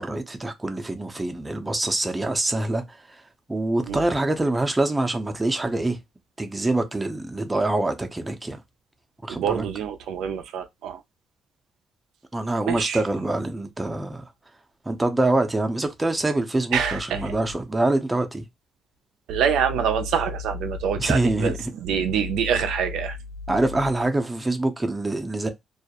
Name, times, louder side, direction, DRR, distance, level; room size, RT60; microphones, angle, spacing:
voice 1, 0.0-3.2 3.5-6.0 6.4-8.6 9.2-9.6 12.3-14.2 14.9-18.4 21.0-21.7 23.5-25.5, right 2 dB, 15° right, 0.5 m, -25 dB
voice 2, 9.3-11.0 12.7-13.0 16.7-17.2 19.3-23.2, right 7 dB, 80° right, 0.3 m, -25 dB
2.3 x 2.0 x 2.8 m
cardioid pair, 90°, 0 cm